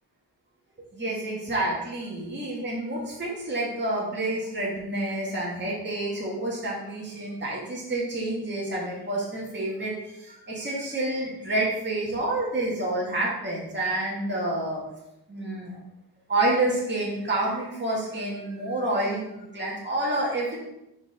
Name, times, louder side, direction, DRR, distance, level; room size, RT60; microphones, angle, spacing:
voice 1, 0.9-14.8 15.3-15.7 16.3-20.6, right 2 dB, 25° right, -5 dB, 1.8 m, -28 dB
5.1 x 4.2 x 4.9 m, 0.87 s
cardioid pair, 75°, 42 cm